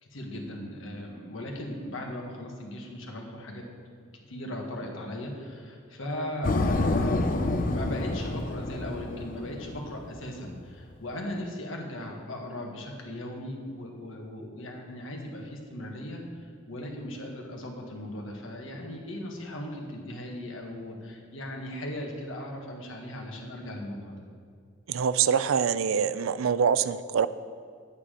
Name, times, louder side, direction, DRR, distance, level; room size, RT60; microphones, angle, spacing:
voice 1, 0.0-3.6 4.3-24.1, left 1 dB, 70° left, 1 dB, 1.6 m, -38 dB
sound 1, 6.4-10.2, left 2 dB, 45° left, 0.6 m, -28 dB
voice 2, 24.9-27.3, right 7 dB, 90° right, 15 dB, 0.4 m, -25 dB
9.6 x 8.4 x 5.0 m, 2.1 s
head